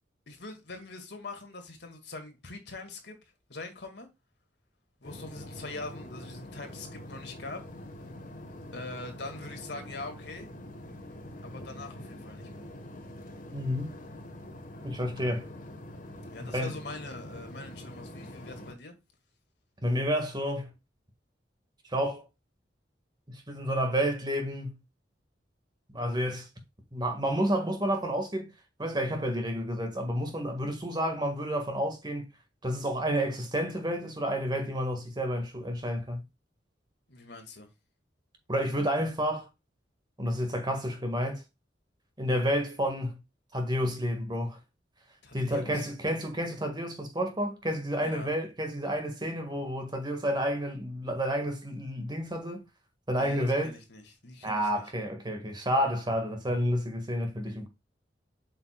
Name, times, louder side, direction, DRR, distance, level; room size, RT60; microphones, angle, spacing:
voice 1, 0.3-3.2 3.5-4.1 5.0-7.6 8.7-10.5 11.4-12.6 16.3-18.9 37.1-37.7 45.2-45.9 48.0-48.3 53.2-54.9, left 2 dB, 70° left, 2.0 m, -43 dB
sound 1, 5.0-18.7, left 1 dB, 50° left, 1.3 m, -45 dB
voice 2, 13.5-13.9 14.8-15.5 16.4-16.7 19.8-20.7 21.9-22.2 23.3-24.8 25.9-26.5 26.9-28.5 28.8-32.3 32.6-36.2 38.5-39.5 40.2-41.4 42.2-43.2 43.5-44.6 45.3-52.6 53.1-53.8 54.4-57.7, equal, 25° right, 1.7 m, -30 dB
7.8 x 5.9 x 2.3 m
head